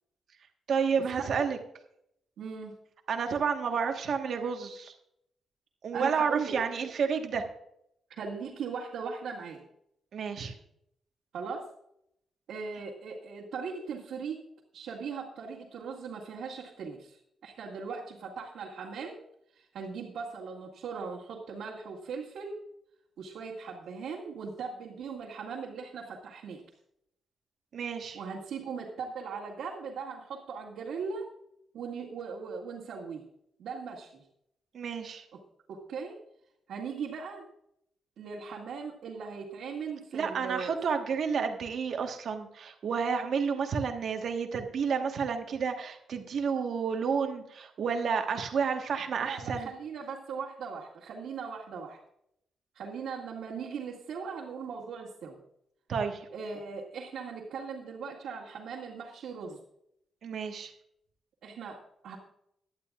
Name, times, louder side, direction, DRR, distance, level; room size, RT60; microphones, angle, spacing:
voice 1, 0.7-1.6 3.1-4.9 5.8-7.5 10.1-10.5 27.7-28.2 34.7-35.2 40.1-49.7 55.9-56.2 60.2-60.7, right 6 dB, 55° right, 5 dB, 1.4 m, -30 dB
voice 2, 2.4-2.8 5.9-6.5 8.2-9.6 11.3-11.7 12.5-14.4 14.7-19.2 19.5-22.6 23.2-26.6 28.1-31.3 31.7-33.3 33.6-34.2 35.3-35.4 35.7-36.2 36.7-37.5 38.2-40.7 49.2-52.0 52.7-55.4 56.3-59.6 61.4-62.2, right 5 dB, 80° right, -6 dB, 2.1 m, -39 dB
17.5 x 11.0 x 2.5 m, 0.76 s
wide cardioid pair, 155°, 0 cm